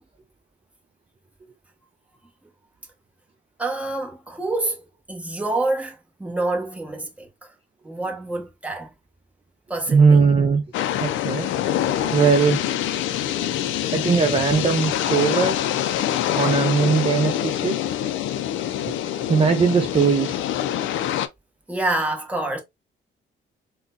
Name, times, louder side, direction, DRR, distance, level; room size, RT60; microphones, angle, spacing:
voice 1, 3.6-7.5 7.8-8.9 9.7-10.2 13.1-13.2 13.5-13.9 14.2-14.4 21.7-22.6, right 2 dB, 5° right, 1.1 m, -27 dB
voice 2, 9.9-10.6 11.0-11.5 11.8-12.7 13.9-15.6 16.3-17.8 18.9-19.0 19.3-20.5, right 5 dB, 30° right, 0.5 m, -19 dB
sound 1, 10.7-21.3, left 11 dB, 80° left, 0.4 m, -25 dB
3.8 x 2.2 x 2.5 m
cardioid pair, 90°, 20 cm